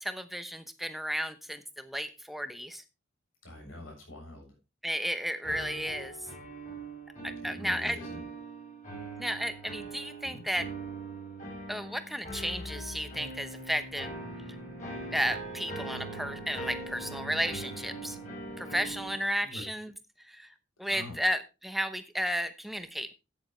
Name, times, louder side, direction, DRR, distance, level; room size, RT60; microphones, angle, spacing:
voice 1, 0.0-2.8 4.8-6.1 7.2-8.0 9.2-10.7 11.7-14.1 15.1-18.2 18.6-19.9 20.3-20.5 20.8-23.1, equal, ahead, 9 dB, 0.9 m, -33 dB
voice 2, 3.4-4.5 7.4-8.2 9.8-9.9 10.2-10.4 19.4-19.6 20.9-21.2, left 1 dB, 85° left, 1 dB, 7.3 m, -45 dB
sound 1, 5.4-19.2, right 2 dB, 35° left, 5.9 m, -41 dB
13.5 x 9.7 x 3.2 m, 0.28 s
head